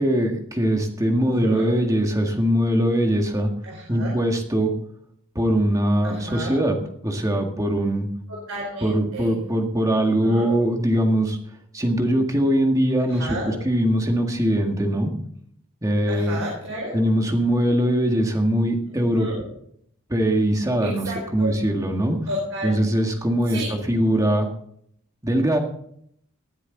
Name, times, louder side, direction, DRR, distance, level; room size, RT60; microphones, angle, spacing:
voice 1, 0.0-3.5 3.9-4.7 5.4-6.8 7.0-8.1 8.8-11.4 11.7-15.1 15.8-16.4 16.9-19.3 20.1-22.2 22.6-23.6 23.9-24.5 25.2-25.6, equal, 15° right, 3 dB, 1.8 m, -21 dB
voice 2, 1.2-1.7 3.6-4.2 6.0-6.6 8.3-9.4 10.0-10.5 13.1-13.6 16.1-16.9 18.9-19.4 20.8-21.7 22.3-22.8 23.4-23.8, right 1 dB, 60° right, -3 dB, 4.5 m, -32 dB
19.0 x 9.8 x 4.0 m, 0.68 s
head